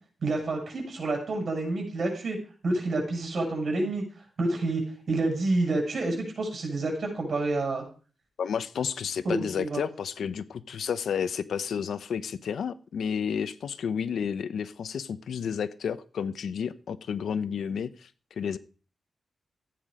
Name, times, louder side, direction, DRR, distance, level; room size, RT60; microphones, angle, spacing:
voice 1, 0.2-2.4 2.6-4.0 4.4-4.8 5.1-7.8 9.2-9.8, right 2 dB, 55° right, 1 dB, 7.3 m, -28 dB
voice 2, 8.4-18.1 18.4-18.6, left 7 dB, 90° left, 13 dB, 0.9 m, -31 dB
15.0 x 9.4 x 5.1 m, 0.38 s
wide cardioid pair, 115°, 0 cm